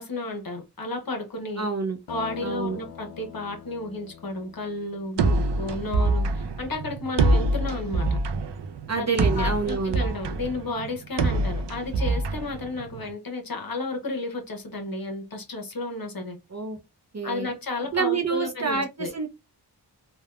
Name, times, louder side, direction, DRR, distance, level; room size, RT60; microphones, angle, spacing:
voice 1, 0.0-1.6 2.1-8.2 9.0-9.1 9.3-16.4 17.2-19.1, left 2 dB, 55° left, 0.8 m, -32 dB
voice 2, 1.6-2.0 2.4-2.8 8.9-10.0 16.5-16.8 17.1-17.5 17.9-19.3, right 4 dB, 40° right, 0.6 m, -27 dB
sound 1, 2.1-6.4, left 9 dB, 85° left, 0.5 m, -44 dB
sound 2, 5.2-13.1, right 2 dB, 85° right, 0.5 m, -25 dB
3.4 x 2.1 x 2.3 m
wide cardioid pair, 70°, 41 cm